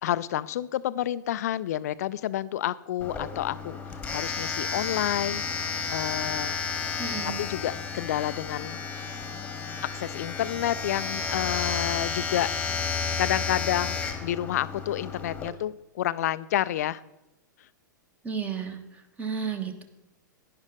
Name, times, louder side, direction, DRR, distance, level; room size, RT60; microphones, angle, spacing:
voice 1, 0.0-5.4 5.9-6.6 7.4-8.8 9.9-12.5 13.2-17.0, left 12 dB, 50° left, 17 dB, 0.4 m, -29 dB
Domestic sounds home sounds, 3.0-15.5, left 5 dB, 10° left, 1.3 m, -32 dB
voice 2, 7.0-7.4 18.2-19.8, right 6 dB, 15° right, 8 dB, 1.2 m, -33 dB
11.0 x 10.5 x 3.8 m, 0.95 s
figure-of-eight pair, 100°, 11 cm